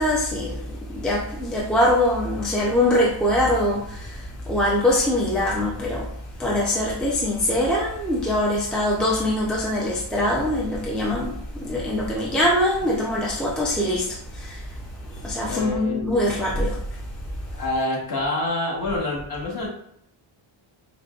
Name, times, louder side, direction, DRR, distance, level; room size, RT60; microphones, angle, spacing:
voice 1, 0.0-6.1 6.4-17.0, left 1 dB, ahead, -4 dB, 0.4 m, -23 dB
voice 2, 15.4-16.5 17.5-19.7, left 2 dB, 45° left, -4 dB, 1.3 m, -27 dB
5.0 x 2.2 x 2.4 m, 0.72 s
wide cardioid pair, 160°, 48 cm